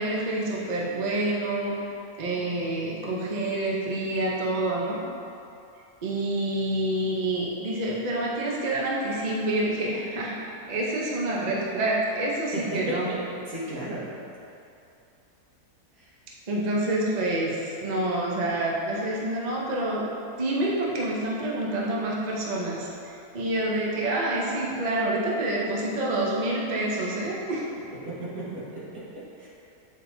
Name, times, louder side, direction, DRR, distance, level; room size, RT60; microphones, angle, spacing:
voice 1, 0.0-1.7 2.2-5.0 6.0-10.4 10.7-13.1 16.5-20.0 20.4-27.6, right 1 dB, 40° right, -4 dB, 0.6 m, -27 dB
voice 2, 12.5-13.0 13.3-14.0 16.0-16.1 28.0-29.5, right 1 dB, 70° right, -10 dB, 2.1 m, -35 dB
8.5 x 4.5 x 2.6 m, 2.7 s
omnidirectional pair, 1.6 m